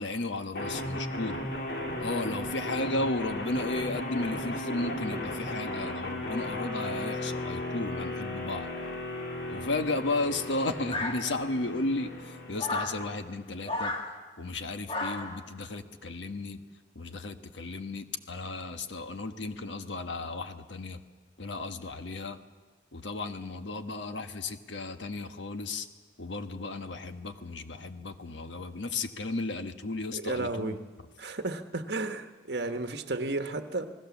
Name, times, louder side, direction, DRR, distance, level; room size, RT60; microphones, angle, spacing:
voice 1, 0.0-1.4 2.0-8.7 9.5-13.9 14.4-16.6 16.9-21.0 21.4-22.4 22.9-25.9 26.2-30.8, left 2 dB, 80° left, 8 dB, 1.4 m, -34 dB
sound 1, 0.5-13.5, left 1 dB, 55° left, 2.5 m, -36 dB
sound 2, 10.9-11.6 12.6-13.0 13.6-14.1 14.9-15.4, left 2 dB, 30° left, 2.0 m, -33 dB
voice 2, 30.1-30.8 31.2-33.9, right 2 dB, 60° right, 8 dB, 1.3 m, -33 dB
28.0 x 19.5 x 7.2 m, 1.4 s
head